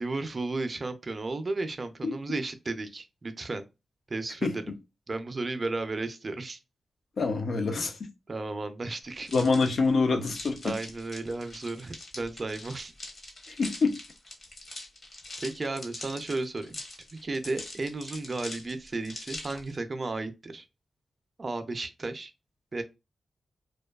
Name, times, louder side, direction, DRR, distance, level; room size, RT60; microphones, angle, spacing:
voice 1, 0.0-3.6 4.1-4.6 5.1-6.6 8.3-9.3 10.6-12.9 15.4-16.8 17.1-20.7 21.4-22.3 22.7-22.8, right 3 dB, 35° right, 0.4 m, -34 dB
voice 2, 7.2-8.0 9.3-10.7 13.5-13.9, left 4 dB, 65° left, 0.4 m, -26 dB
sound 1, 9.2-19.7, left 2 dB, 45° left, 0.9 m, -43 dB
2.5 x 2.2 x 2.2 m
wide cardioid pair, 100°, 0 cm